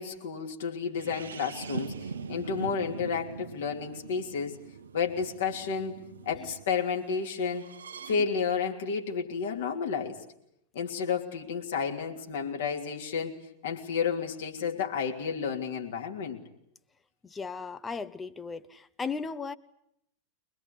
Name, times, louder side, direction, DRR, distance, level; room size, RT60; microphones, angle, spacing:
voice 1, 0.0-4.6 4.9-6.0 6.2-7.7 8.1-10.2 10.7-13.3 13.6-16.4, left 6 dB, 60° left, 2 dB, 3.2 m, -31 dB
sound 1, 0.9-6.6 7.5-8.2, right 5 dB, 65° right, 1.1 m, -41 dB
voice 2, 17.2-19.6, left 5 dB, 15° left, 13 dB, 1.0 m, -36 dB
23.5 x 20.5 x 9.7 m, 0.77 s
figure-of-eight pair, 90°, 0 cm